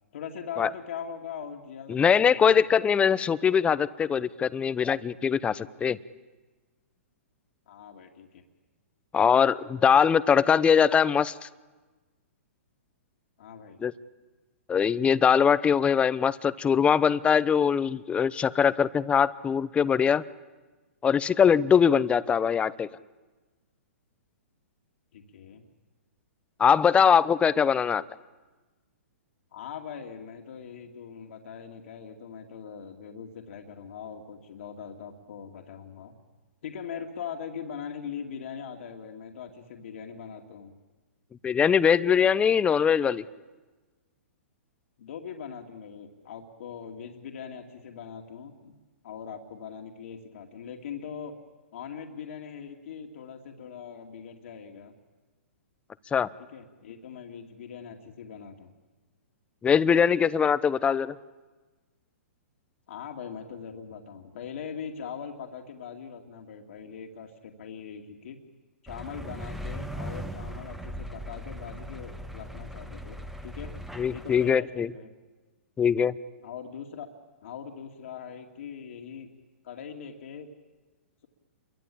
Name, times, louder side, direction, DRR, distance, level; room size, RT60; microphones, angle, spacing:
voice 1, 0.1-2.9 7.7-8.4 13.4-13.8 25.1-25.6 29.5-36.1 36.6-40.7 45.0-48.7 49.0-51.3 51.7-54.9 56.5-58.7 60.8-60.9 62.9-68.4 68.8-73.7 74.1-75.1 76.4-77.1 77.4-79.3 79.6-80.5, left 7 dB, 65° left, 2 dB, 2.5 m, -41 dB
voice 2, 1.9-6.0 9.1-11.5 13.8-13.9 14.7-20.2 21.0-22.9 26.6-28.0 41.4-43.2 56.1-56.3 59.6-61.1 74.0-74.9 75.8-76.1, left 7 dB, 15° left, 17 dB, 0.8 m, -22 dB
sound 1, 68.9-74.5, equal, 5° right, 1.4 m, -39 dB
28.5 x 23.5 x 8.6 m, 1.3 s
hypercardioid pair, 125°, 8 cm